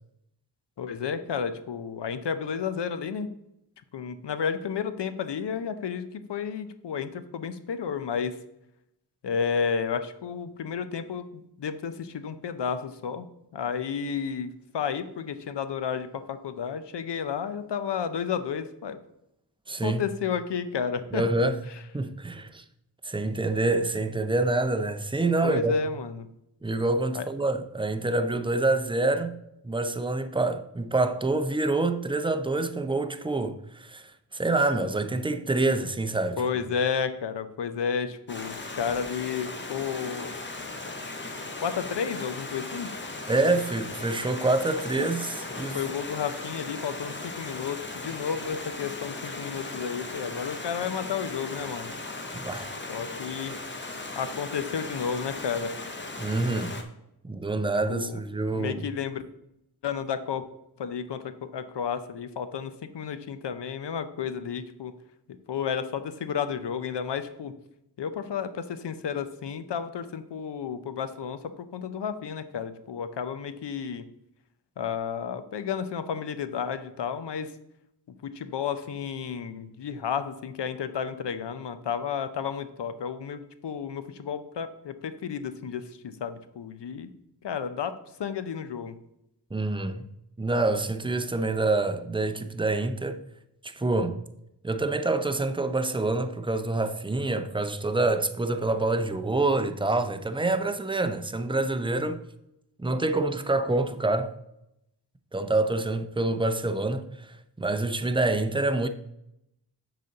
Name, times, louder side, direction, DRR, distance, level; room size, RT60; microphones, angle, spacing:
voice 1, 0.8-3.3 3.9-8.4 9.2-13.3 13.5-14.5 14.7-19.0 19.8-21.2 25.4-26.3 27.1-27.3 36.4-40.3 41.6-42.9 45.0-45.1 45.7-51.9 52.9-53.6 54.1-55.7 57.9-58.2 58.5-59.2 59.8-60.4 60.8-64.9 65.5-67.6 68.0-74.1 74.8-77.5 78.1-87.1 87.4-87.9 88.2-89.0, left 7 dB, 80° left, 0.7 m, -32 dB
voice 2, 19.7-20.0 21.1-21.6 21.9-22.6 23.0-25.7 26.6-29.4 29.6-36.4 43.3-45.8 52.3-52.7 56.2-56.7 57.2-58.8 89.5-90.0 90.4-93.2 93.6-94.2 94.6-102.2 102.8-104.3 105.3-108.9, right 2 dB, 15° right, 0.5 m, -26 dB
Stream, 38.3-56.8, left 3 dB, 25° left, 0.8 m, -37 dB
6.7 x 4.1 x 6.5 m
wide cardioid pair, 115°, 41 cm